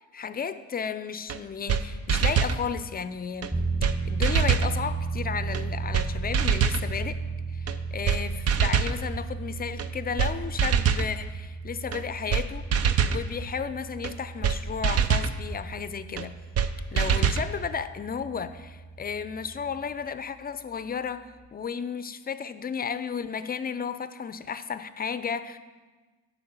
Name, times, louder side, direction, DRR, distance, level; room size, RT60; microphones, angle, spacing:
voice 1, 0.0-3.6 4.0-7.2 7.5-12.7 13.0-16.4 16.9-25.6, left 6 dB, 30° left, 12 dB, 0.4 m, -33 dB
sound 1, 1.3-1.4 1.7-1.8 2.1-2.6 3.4-3.5 3.8-4.0 4.2-4.7 5.5-5.6 5.9-6.1 6.3-6.8 7.7-7.8 8.1-8.2 8.5-9.0 9.8-9.9 10.2-10.3 10.6-11.1 11.9-12.0 12.3-12.4 12.7-13.2 14.0-14.1 14.4-14.6 14.8-15.3 16.2-16.3 16.6-16.7 17.0-17.5, right 7 dB, 55° right, 0.6 m, -23 dB
sound 2, 3.5-19.9, right 4 dB, 15° right, 2.0 m, -35 dB
7.9 x 5.7 x 6.8 m, 1.3 s
cardioid pair, 90°, 30 cm